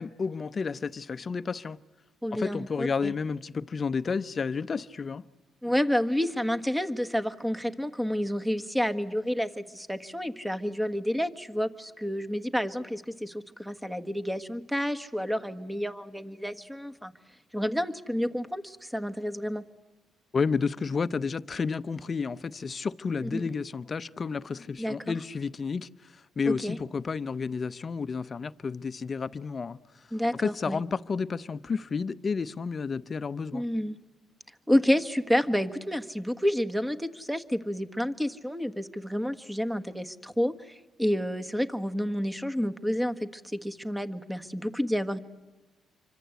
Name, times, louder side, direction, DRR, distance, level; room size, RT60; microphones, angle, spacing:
voice 1, 0.0-1.8 2.3-5.2 20.3-33.6, left 5 dB, 40° left, 0.9 m, -31 dB
voice 2, 2.2-3.1 5.6-17.1 17.5-19.6 23.2-23.4 24.8-25.0 26.5-26.8 30.1-30.8 33.5-34.0 34.7-45.2, equal, 5° right, 1.6 m, -29 dB
27.5 x 25.0 x 8.2 m
cardioid pair, 90°, 0 cm